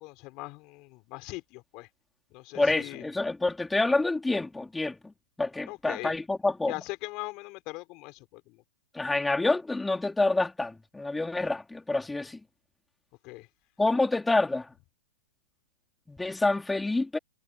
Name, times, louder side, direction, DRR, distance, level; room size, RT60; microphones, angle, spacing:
voice 1, 0.0-1.9 2.3-3.0 5.7-6.1 6.7-8.6 13.2-13.5, left 24 dB, 35° left, 5.4 m, -40 dB
voice 2, 2.5-5.1 5.4-6.7 8.9-12.4 13.8-14.7 16.1-17.2, left 2 dB, 5° left, 3.8 m, -27 dB
hypercardioid pair, 140°, 0 cm